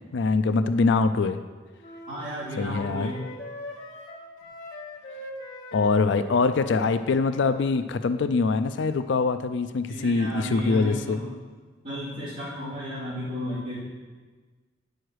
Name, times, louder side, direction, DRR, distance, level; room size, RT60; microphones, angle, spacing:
voice 1, 0.1-1.4 2.6-3.1 5.7-11.2, left 4 dB, 65° left, 11 dB, 0.4 m, -23 dB
sound 1, 1.8-7.0, left 1 dB, 45° left, 1.8 m, -41 dB
voice 2, 2.1-3.2 9.9-11.3 11.8-13.8, equal, 40° right, -13 dB, 2.8 m, -33 dB
9.9 x 6.4 x 4.7 m, 1.4 s
head